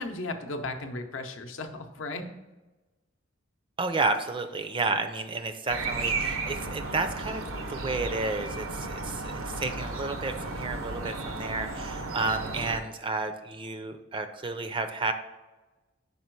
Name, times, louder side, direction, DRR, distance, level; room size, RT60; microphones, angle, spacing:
voice 1, 0.0-2.2, left 2 dB, 70° left, 6 dB, 0.7 m, -35 dB
voice 2, 3.8-7.4 7.7-15.1, right 3 dB, 25° right, 8 dB, 0.4 m, -31 dB
sound 1, 5.7-12.8, right 3 dB, 85° right, 0.7 m, -34 dB
5.4 x 4.4 x 4.5 m, 1.1 s
head